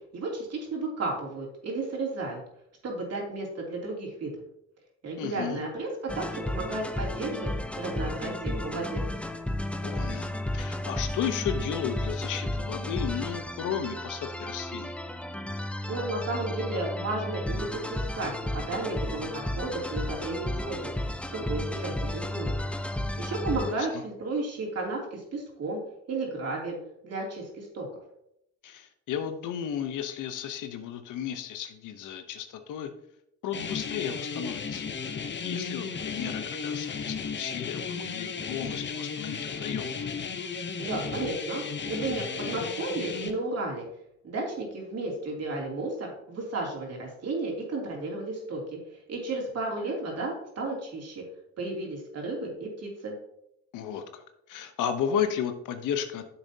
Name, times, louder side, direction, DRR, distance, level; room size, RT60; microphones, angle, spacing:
voice 1, 0.1-2.4 2.8-4.3 5.0-7.5 7.8-9.1 15.9-20.9 21.3-22.6 23.2-25.8 26.1-26.8 27.0-27.9 40.8-43.9 44.2-48.8 49.1-51.2 51.6-53.1, right 2 dB, 55° right, -1 dB, 3.0 m, -33 dB
voice 2, 5.2-5.6 9.8-15.0 23.5-24.0 28.6-32.9 33.4-34.8 35.4-39.9 53.7-56.3, left 8 dB, 85° left, 8 dB, 0.9 m, -34 dB
sound 1, 6.1-23.7, left 1 dB, 5° left, 0.6 m, -33 dB
sound 2, 33.5-43.3, left 5 dB, 40° left, 0.8 m, -34 dB
9.8 x 7.0 x 2.8 m, 0.78 s
cardioid pair, 90°, 30 cm